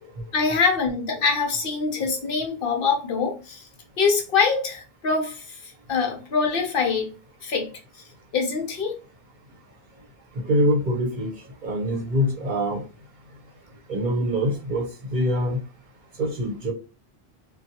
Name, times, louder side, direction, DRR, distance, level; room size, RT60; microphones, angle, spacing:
voice 1, 0.3-3.6 4.0-7.1 7.4-7.7 8.3-8.9, left 5 dB, 65° left, 2 dB, 0.8 m, -24 dB
voice 2, 10.4-11.3 11.6-12.8 13.9-15.6 16.2-16.7, equal, 55° right, -1 dB, 0.8 m, -24 dB
2.7 x 2.2 x 2.7 m, 0.32 s
omnidirectional pair, 1.1 m